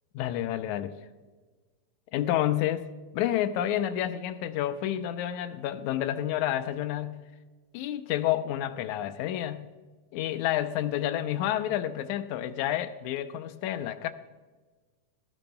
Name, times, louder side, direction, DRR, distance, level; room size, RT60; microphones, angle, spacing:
voice 1, 0.1-0.9 2.1-2.9 3.1-7.2 7.7-9.7 10.1-14.1, left 12 dB, 85° left, 10 dB, 2.1 m, -29 dB
19.0 x 12.0 x 2.2 m, 1.3 s
omnidirectional pair, 3.4 m